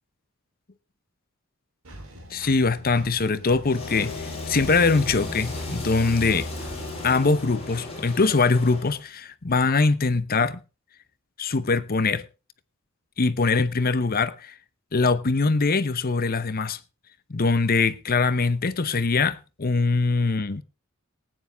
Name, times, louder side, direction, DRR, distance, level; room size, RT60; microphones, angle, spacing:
Engine, 1.8-7.1, right 1 dB, 85° right, 3.5 m, -45 dB
voice 1, 2.3-6.5 7.0-10.6 11.4-12.2 13.2-14.5 14.9-16.8 17.3-20.6, left 4 dB, 45° left, 0.8 m, -22 dB
sound 1, 3.6-9.0, left 2 dB, 30° left, 5.5 m, -34 dB
19.0 x 9.6 x 3.5 m
head